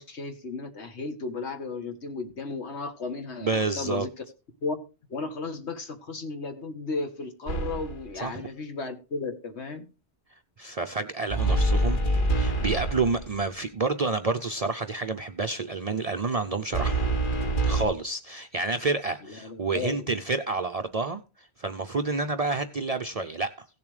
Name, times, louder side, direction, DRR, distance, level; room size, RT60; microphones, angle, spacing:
voice 1, 0.0-4.1 4.6-4.8 5.1-9.9 19.3-20.1, left 3 dB, 70° left, 1.7 m, -34 dB
voice 2, 3.4-4.1 8.2-8.4 10.6-12.0 12.3-17.1 17.7-23.7, right 3 dB, 45° right, 0.5 m, -29 dB
sound 1, 7.5-8.1 11.3-13.4 16.7-17.8, right 2 dB, 45° left, 1.5 m, -25 dB
16.5 x 7.1 x 3.3 m
omnidirectional pair, 1.2 m